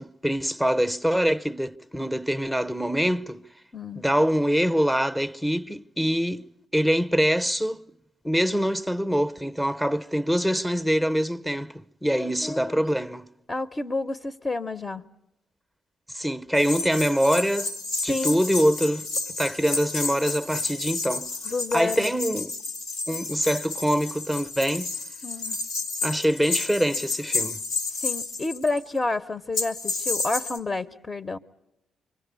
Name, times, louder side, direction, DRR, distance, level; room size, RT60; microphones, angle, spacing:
voice 1, 0.0-3.4 3.9-6.5 6.7-7.8 8.2-13.3 16.1-17.7 18.0-19.1 19.4-21.3 21.7-22.5 23.1-24.9 26.0-27.6, equal, 5° left, 0.9 m, -24 dB
voice 2, 3.7-4.0 12.0-12.8 13.5-15.0 18.1-18.4 21.4-22.1 25.2-25.6 27.9-31.4, left 3 dB, 35° left, 0.9 m, -29 dB
sound 1, 16.5-28.8 29.5-30.6, left 3 dB, 90° left, 2.3 m, -31 dB
26.0 x 24.5 x 8.3 m
hypercardioid pair, 50°, 0 cm